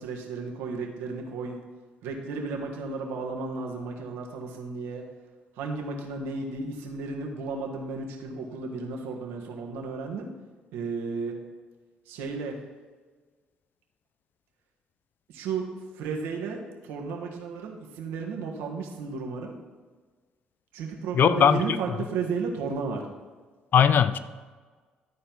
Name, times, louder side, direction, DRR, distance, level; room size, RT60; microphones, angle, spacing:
voice 1, 0.0-1.6 2.0-5.0 5.6-10.3 10.7-11.3 12.1-12.5 15.3-15.7 15.9-19.5 20.7-23.0, right 4 dB, 80° right, 1 dB, 1.5 m, -33 dB
voice 2, 21.1-21.8 23.7-24.2, left 8 dB, 55° left, 13 dB, 0.5 m, -19 dB
12.5 x 4.4 x 5.5 m, 1.4 s
hypercardioid pair, 55°, 4 cm